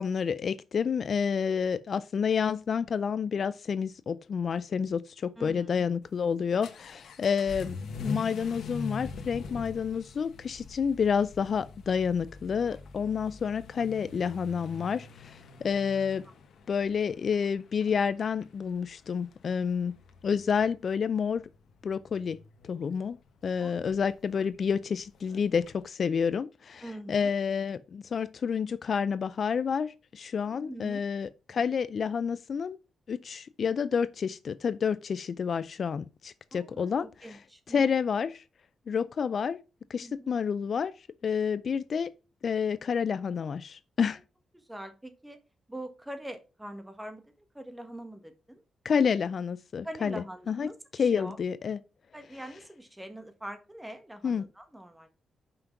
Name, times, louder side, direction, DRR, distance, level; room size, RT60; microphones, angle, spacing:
voice 1, 0.0-16.2 16.7-19.9 20.2-21.4 21.8-22.4 22.6-23.2 23.4-32.8 33.1-37.4 37.7-38.4 38.9-39.6 39.9-40.9 41.2-42.1 42.4-44.2 48.8-50.7 51.0-51.8 54.2-54.4, left 6 dB, 55° left, 0.4 m, -29 dB
voice 2, 5.4-5.8 23.6-23.8 26.8-27.3 30.4-31.1 36.5-37.8 40.0-40.3 44.5-45.4 45.7-48.6 49.8-51.4 52.1-55.1, right 1 dB, 10° right, 1.5 m, -43 dB
Vehicle / Accelerating revving vroom, 6.0-25.8, left 4 dB, 75° left, 1.1 m, -44 dB
5.8 x 5.2 x 5.8 m
cardioid pair, 90°, 0 cm